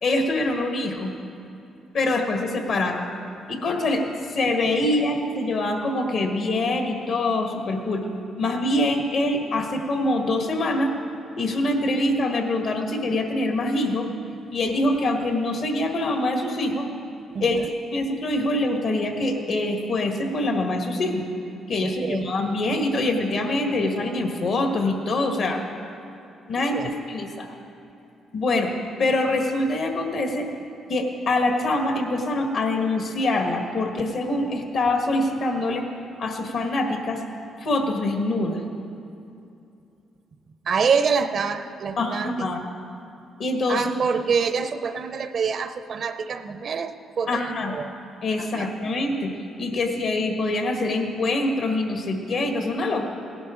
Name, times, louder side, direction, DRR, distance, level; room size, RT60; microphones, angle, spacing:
voice 1, 0.0-1.1 1.9-3.0 3.5-4.0 4.3-8.0 8.4-10.9 11.3-14.1 14.5-16.9 17.4-17.6 17.9-21.2 21.7-25.6 26.5-26.8 27.1-27.5 28.3-28.7 29.0-30.5 30.9-35.8 36.2-37.2 37.6-38.6 42.0-42.6 43.4-43.9 47.3-47.8 48.2-49.3 49.6-53.0, left 2 dB, 65° left, 3 dB, 1.6 m, -24 dB
voice 2, 17.3-17.7 21.8-22.2 26.7-26.9 40.6-42.5 43.7-47.9 48.4-48.7, right 6 dB, 55° right, 10 dB, 0.6 m, -26 dB
16.5 x 11.0 x 3.8 m, 2.7 s
cardioid pair, 90°, 0 cm